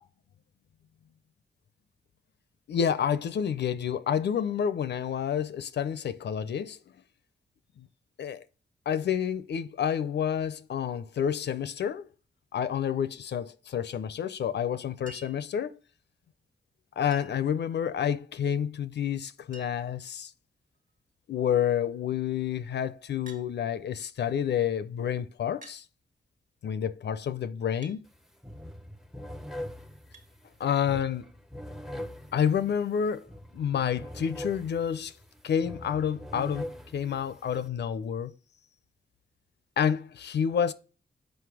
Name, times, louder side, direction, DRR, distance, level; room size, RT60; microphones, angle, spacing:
voice 1, 2.7-6.8 7.8-7.9 8.2-8.4 8.9-12.1 12.5-15.8 17.0-20.3 21.3-25.8 26.6-28.0 30.6-31.3 32.3-33.3 33.5-35.1 35.4-38.3 39.8-40.7, left 8 dB, 80° left, 0.5 m, -29 dB
Chink clink, 15.1-15.5 17.1-17.5 18.9-19.0 19.2-19.3 19.5-20.0 20.7-21.1 23.3-23.5 24.6-24.7 25.6-25.8 27.8-28.0 30.1-30.3 31.7-31.8, right 3 dB, 50° right, 1.6 m, -50 dB
sound 1, 28.0-28.2 28.4-37.7, left 1 dB, ahead, 0.6 m, -42 dB
6.1 x 5.2 x 4.8 m
cardioid pair, 70°, 17 cm